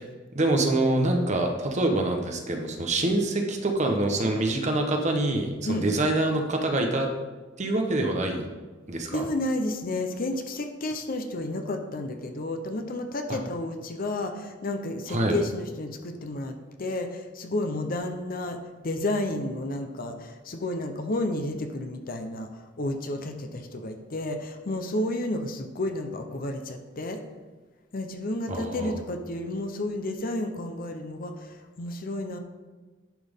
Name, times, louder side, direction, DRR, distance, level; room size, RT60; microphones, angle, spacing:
voice 1, 0.3-7.1 7.6-8.5 8.9-9.2 13.3-13.4 15.1-15.3 28.5-29.0, right 2 dB, 35° right, 3 dB, 1.0 m, -25 dB
voice 2, 9.1-16.5 16.8-18.6 18.8-22.5 22.8-27.2 27.9-32.4, left 1 dB, 50° left, 6 dB, 0.8 m, -31 dB
10.5 x 6.0 x 3.6 m, 1.3 s
head